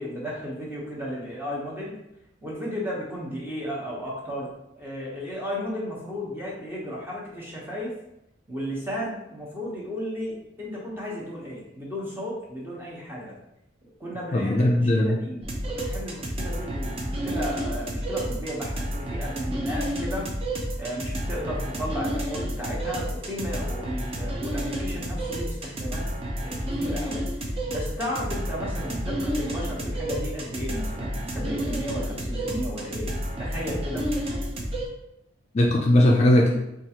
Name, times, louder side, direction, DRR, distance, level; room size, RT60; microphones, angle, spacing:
voice 1, 0.0-1.9 2.4-8.0 8.5-13.3 13.8-20.3 20.8-26.1 26.4-34.1, equal, 10° right, -4 dB, 0.8 m, -34 dB
voice 2, 14.3-15.2 35.5-36.5, left 1 dB, 35° left, -1 dB, 0.4 m, -19 dB
sound 1, 15.4-34.9, equal, 30° right, 0.5 m, -30 dB
4.5 x 2.4 x 2.8 m, 0.84 s
head